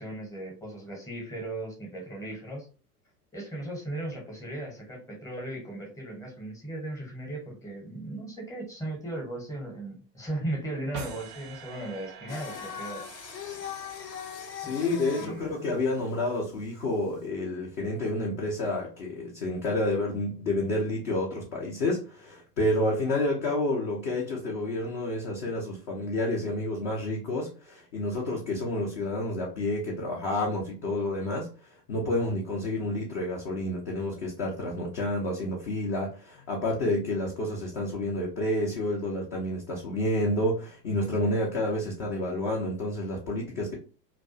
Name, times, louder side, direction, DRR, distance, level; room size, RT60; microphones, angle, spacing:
voice 1, 0.0-2.7 3.3-13.1 14.6-14.9 15.2-15.6 41.2-41.4, right 1 dB, 5° left, 0.8 m, -37 dB
sound 1, 10.9-16.1, right 7 dB, 40° right, 0.5 m, -47 dB
Singing, 12.3-17.2, left 8 dB, 75° left, 0.6 m, -40 dB
voice 2, 14.6-43.7, left 1 dB, 25° left, 0.4 m, -29 dB
2.3 x 2.2 x 2.5 m
figure-of-eight pair, 90°, 49 cm